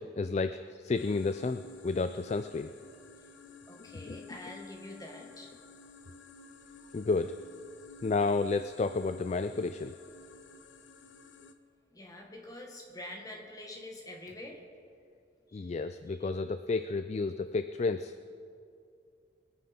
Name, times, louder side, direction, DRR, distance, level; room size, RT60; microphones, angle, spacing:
voice 1, 0.0-2.7 4.1-4.2 6.9-7.4 8.0-9.9 15.5-18.1, left 3 dB, 35° left, 10 dB, 0.3 m, -31 dB
sound 1, 0.9-11.5, left 2 dB, 85° left, 0.9 m, -53 dB
voice 2, 3.7-5.5 11.9-14.6 15.5-15.7 16.1-16.3, left 1 dB, 20° left, 1 dB, 1.5 m, -46 dB
22.5 x 9.3 x 4.4 m, 2.4 s
head